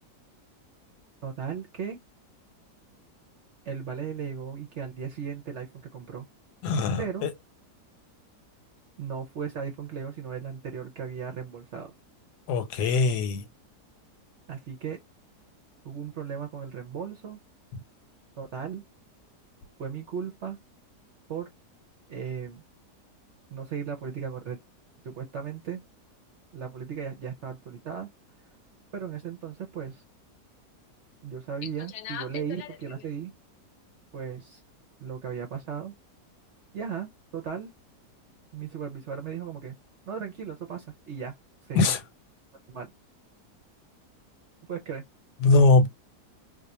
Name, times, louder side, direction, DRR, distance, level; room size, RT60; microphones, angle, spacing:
voice 1, 1.2-2.0 3.6-6.3 7.0-7.3 9.0-11.9 14.5-15.0 15.8-17.4 18.4-18.8 19.8-20.6 21.3-21.5 22.1-22.6 23.5-24.6 25.0-25.8 26.5-28.1 28.9-30.0 31.2-33.3 34.1-34.6 35.0-35.9 36.7-37.7 38.5-39.8 40.1-41.3 41.7-41.9 42.7-42.9 44.7-45.0, right 7 dB, 60° right, 0.8 m, -36 dB
voice 2, 6.6-7.3 12.5-13.4 32.0-32.2 41.7-42.0 45.4-45.9, left 3 dB, 75° left, 1.2 m, -22 dB
2.6 x 2.4 x 4.1 m
omnidirectional pair, 1.8 m